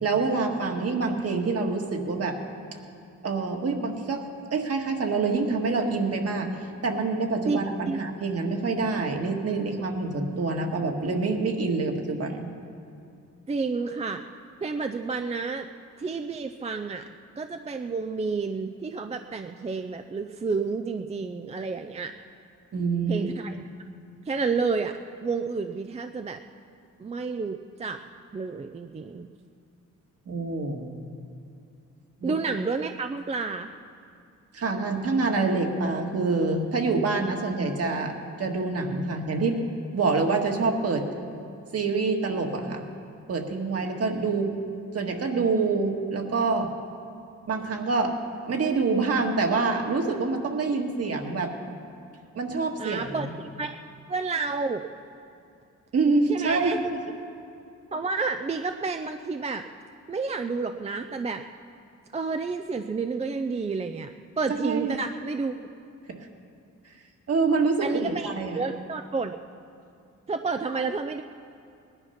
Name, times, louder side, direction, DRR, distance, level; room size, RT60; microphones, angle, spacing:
voice 1, 0.0-2.4 3.2-4.2 4.5-6.5 6.8-12.5 22.7-23.3 30.3-31.0 32.2-32.4 34.5-39.6 39.9-41.1 41.7-42.8 43.3-44.5 44.9-46.7 47.5-48.2 48.5-51.5 52.4-53.2 55.9-56.7 64.6-65.0 66.2-66.3 67.3-68.6, right 4 dB, 50° right, 3 dB, 1.7 m, -26 dB
voice 2, 7.5-8.0 13.5-14.2 14.6-15.7 16.0-17.1 17.4-22.1 23.1-23.6 24.3-26.4 27.0-28.0 28.3-29.3 32.2-33.7 50.7-50.8 52.8-53.8 54.1-54.8 56.3-56.8 57.9-59.6 60.1-61.4 62.1-65.5 67.8-69.3 70.3-71.2, right 4 dB, 20° right, 7 dB, 0.4 m, -30 dB
20.0 x 11.0 x 5.8 m, 2.5 s
wide cardioid pair, 140°, 31 cm